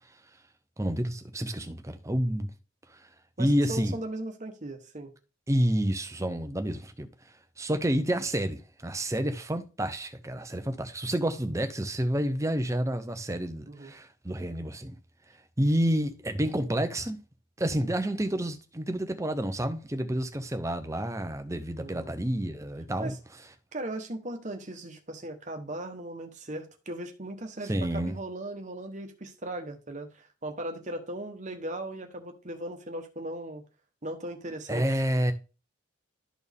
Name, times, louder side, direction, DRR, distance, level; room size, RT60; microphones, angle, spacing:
voice 1, 0.8-2.5 2.9-3.1 3.4-4.0 5.5-7.1 7.6-15.0 15.6-17.2 17.6-23.2 27.7-28.1 34.7-35.3, right 1 dB, 15° right, 0.7 m, -29 dB
voice 2, 3.4-5.1 13.7-13.9 21.8-22.1 23.0-23.2 23.7-33.6 34.0-34.8, right 1 dB, 35° right, 1.2 m, -38 dB
12.5 x 4.4 x 3.5 m
head